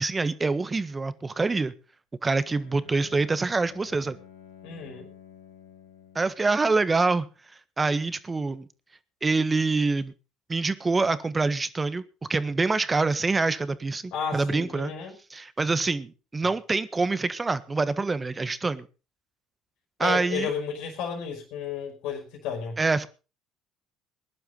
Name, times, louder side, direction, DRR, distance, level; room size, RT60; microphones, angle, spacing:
voice 1, 0.0-1.7 2.2-4.2 6.1-7.3 7.8-8.7 9.2-10.1 10.5-12.0 12.3-14.9 15.3-18.9 20.0-20.5 22.8-23.1, right 3 dB, 25° right, 14 dB, 1.5 m, -25 dB
Bowed string instrument, 2.4-6.5, left 8 dB, 90° left, 4.0 m, -51 dB
voice 2, 4.6-5.1 14.1-15.1 20.0-22.8, left 6 dB, 70° left, 3 dB, 5.1 m, -33 dB
20.0 x 11.5 x 4.1 m, 0.33 s
hypercardioid pair, 65°, 0 cm